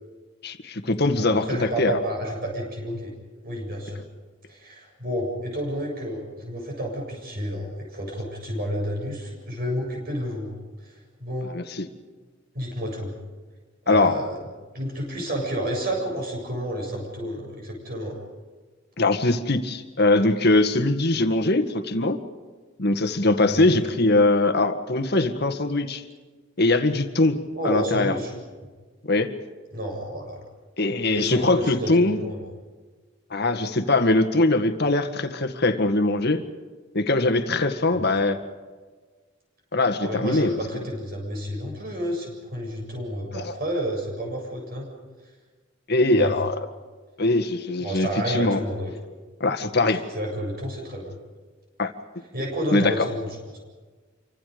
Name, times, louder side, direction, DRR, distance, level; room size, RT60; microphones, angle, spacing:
voice 1, 0.4-2.0 11.5-11.9 13.9-14.1 19.0-22.2 22.8-26.0 26.6-28.1 29.0-29.4 30.8-32.2 33.3-36.4 36.9-38.4 39.7-40.5 43.3-43.5 45.9-46.7 47.2-48.6 49.4-50.0 51.8-51.9 52.7-53.1, left 2 dB, 55° left, 8 dB, 1.8 m, -22 dB
voice 2, 1.0-3.1 3.4-4.0 4.5-10.6 10.8-11.5 12.5-13.2 13.9-14.4 14.7-18.2 23.4-23.9 27.5-28.3 29.7-30.4 31.1-32.4 37.8-38.3 40.0-44.9 46.1-46.3 47.8-48.9 49.9-51.1 52.3-53.3, equal, 50° right, 0 dB, 7.5 m, -30 dB
28.0 x 25.0 x 5.2 m, 1.4 s
head